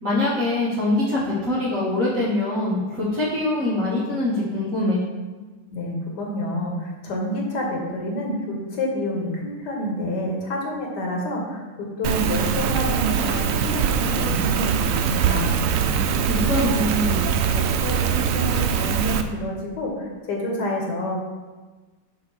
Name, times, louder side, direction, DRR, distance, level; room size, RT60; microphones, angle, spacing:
voice 1, 0.0-5.0 16.3-17.2, left 2 dB, 50° right, -10 dB, 2.0 m, -23 dB
voice 2, 5.7-11.6 12.0-16.7 17.2-17.3 17.8-21.2, left 1 dB, 65° left, -1 dB, 1.9 m, -28 dB
Rain, 12.0-19.2, right 7 dB, 90° right, 0.7 m, -22 dB
8.2 x 3.0 x 6.3 m, 1.3 s
omnidirectional pair, 2.0 m